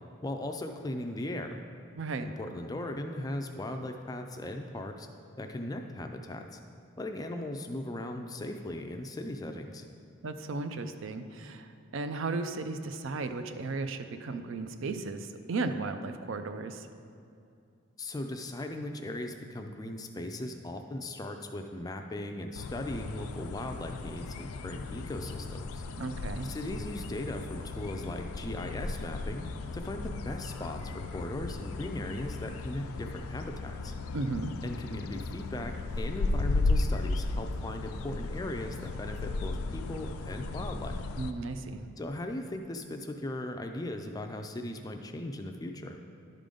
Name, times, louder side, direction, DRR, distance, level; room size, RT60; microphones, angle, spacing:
voice 1, 0.2-1.6 2.3-5.1 5.4-6.6 7.0-9.9 18.0-25.8 26.4-29.5 29.7-33.9 34.6-41.0 42.0-46.0, left 1 dB, 15° left, 5 dB, 0.3 m, -38 dB
voice 2, 2.0-2.3 10.2-16.9 26.0-26.5 34.1-34.5 41.2-41.8, right 3 dB, 65° right, 8 dB, 0.4 m, -35 dB
sound 1, 22.5-41.3, left 3 dB, 90° left, 0.4 m, -35 dB
11.0 x 3.8 x 5.1 m, 2.5 s
head